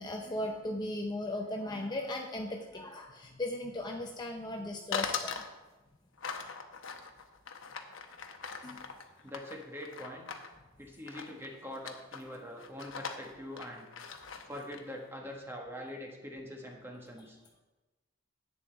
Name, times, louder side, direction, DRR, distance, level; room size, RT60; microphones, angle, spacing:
voice 1, 0.0-5.4 8.6-8.8, left 1 dB, 20° left, 1 dB, 0.6 m, -37 dB
sound 1, 4.9-5.5 6.2-10.5 11.1-11.5 11.7-12.2 12.6-14.8, left 6 dB, 70° left, 0.9 m, -40 dB
voice 2, 9.2-10.3 10.8-13.9 14.5-17.4, equal, 10° right, 0 dB, 1.4 m, -44 dB
11.0 x 8.7 x 3.5 m, 1.1 s
head